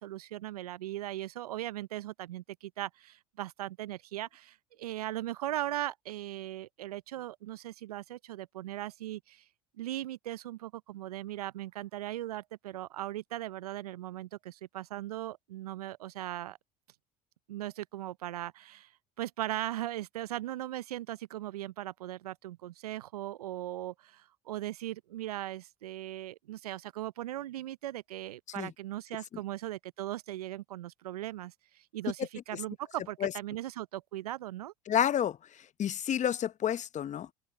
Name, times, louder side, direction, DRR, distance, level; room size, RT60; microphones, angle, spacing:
voice 1, 0.0-9.4 9.8-16.6 17.5-18.9 19.2-34.7, right 14 dB, 85° right, 0.6 m, -38 dB
voice 2, 34.9-35.4 35.8-37.3, left 9 dB, 40° left, 0.9 m, -29 dB
hypercardioid pair, 70°, 19 cm